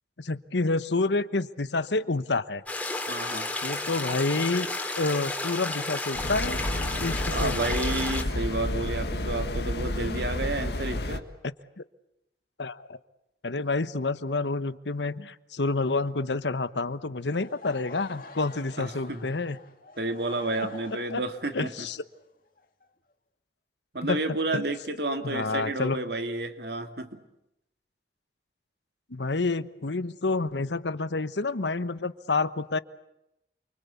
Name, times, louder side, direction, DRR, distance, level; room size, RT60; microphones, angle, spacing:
voice 1, 0.2-2.6 3.6-4.7 5.0-6.6 7.0-7.5 11.8-11.9 12.6-13.0 13.4-19.6 21.1-21.2 21.5-22.0 24.0-24.2 24.5-24.6 25.2-26.0 29.1-32.8, left 3 dB, 90° left, 14 dB, 1.1 m, -28 dB
sound 1, 2.7-8.2, left 2 dB, 10° left, 2.9 m, -32 dB
voice 2, 3.1-3.5 7.3-11.2 18.8-19.3 20.0-21.9 23.9-27.2, right 2 dB, 70° right, 7 dB, 2.5 m, -31 dB
sound 2, 6.1-11.2, left 1 dB, 70° left, 1.9 m, -30 dB
Laughter / Crowd, 17.2-23.1, left 3 dB, 50° left, 2.1 m, -48 dB
29.0 x 24.5 x 8.4 m, 0.84 s
head